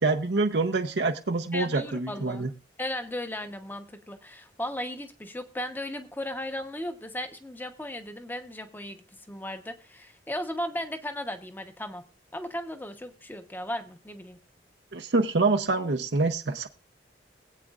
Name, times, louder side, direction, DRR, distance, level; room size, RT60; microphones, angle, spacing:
voice 1, 0.0-2.5 14.9-16.7, right 3 dB, 65° right, 5 dB, 0.7 m, -26 dB
voice 2, 1.5-2.5 2.8-9.0 9.3-12.0 12.3-14.4, left 1 dB, 10° left, 8 dB, 0.9 m, -36 dB
21.5 x 8.4 x 2.4 m, 0.31 s
head